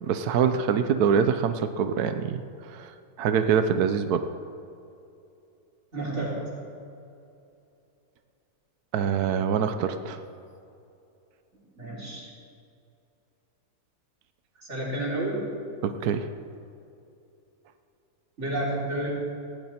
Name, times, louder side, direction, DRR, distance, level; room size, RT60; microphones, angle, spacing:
voice 1, 0.0-2.9 3.2-4.3 8.9-10.2 15.8-16.3, right 7 dB, 80° right, 9 dB, 1.3 m, -25 dB
voice 2, 5.9-6.4 11.8-12.3 14.7-15.5 18.4-19.1, right 1 dB, 45° right, -4 dB, 4.2 m, -30 dB
19.0 x 16.0 x 4.4 m, 2.7 s
omnidirectional pair, 1.6 m